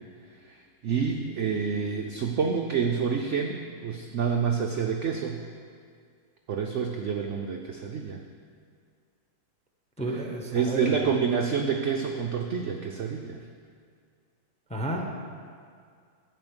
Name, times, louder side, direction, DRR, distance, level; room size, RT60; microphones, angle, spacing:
voice 1, 0.4-5.4 6.5-8.2 10.5-13.4, right 6 dB, 80° right, 3 dB, 0.6 m, -28 dB
voice 2, 10.0-11.1 14.7-15.1, right 1 dB, 5° left, 1 dB, 0.5 m, -31 dB
11.0 x 5.1 x 8.0 m, 2.2 s
omnidirectional pair, 2.0 m